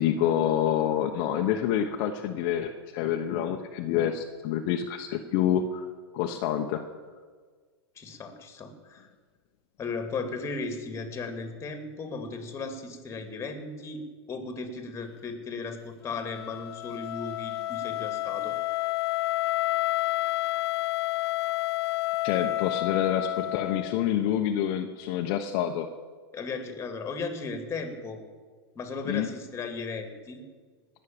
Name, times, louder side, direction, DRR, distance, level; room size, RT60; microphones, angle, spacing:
voice 1, 0.0-5.9 6.1-6.8 22.2-25.9 29.0-29.3, left 10 dB, 50° left, 3 dB, 1.1 m, -27 dB
voice 2, 8.0-9.1 9.8-18.5 26.3-28.2 28.8-30.4, left 4 dB, 20° left, 7 dB, 2.3 m, -36 dB
Wind instrument woodwind instrument, 16.1-24.1, left 16 dB, 70° left, 0.5 m, -30 dB
19.0 x 6.5 x 8.7 m, 1.5 s
hypercardioid pair, 125°, 13 cm